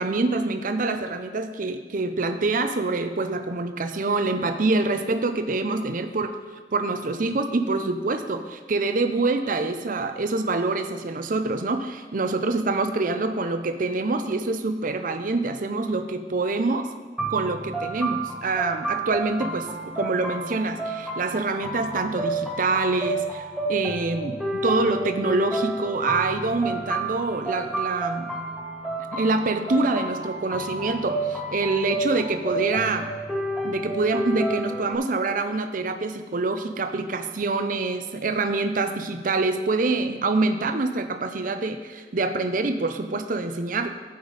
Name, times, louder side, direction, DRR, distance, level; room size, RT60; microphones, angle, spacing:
voice 1, 0.0-6.3 6.7-16.9 17.3-28.3 29.1-33.1 33.6-43.9, right 3 dB, 50° right, 8 dB, 0.6 m, -26 dB
sound 1, 17.2-34.9, right 2 dB, ahead, 1.9 m, -30 dB
15.0 x 5.2 x 4.1 m, 1.4 s
head